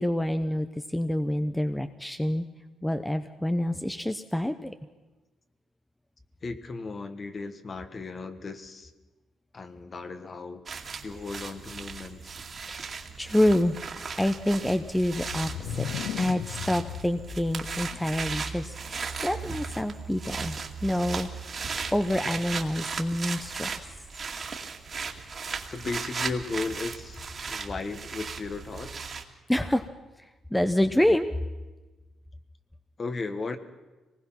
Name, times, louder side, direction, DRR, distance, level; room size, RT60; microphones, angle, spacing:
voice 1, 0.0-2.5 2.8-4.7 12.7-15.9 16.2-21.3 21.9-23.9 29.5-29.9 30.2-31.3, left 1 dB, 5° left, 9 dB, 0.8 m, -27 dB
voice 2, 6.4-8.9 9.5-12.3 25.7-27.2 27.5-29.1 33.0-33.6, left 3 dB, 40° left, 9 dB, 1.6 m, -36 dB
sound 1, 10.7-29.2, right 5 dB, 40° right, 2.3 m, -37 dB
sound 2, 14.9-18.7, left 11 dB, 90° left, 0.6 m, -37 dB
25.0 x 20.0 x 5.9 m, 1.2 s
cardioid pair, 90°, 0 cm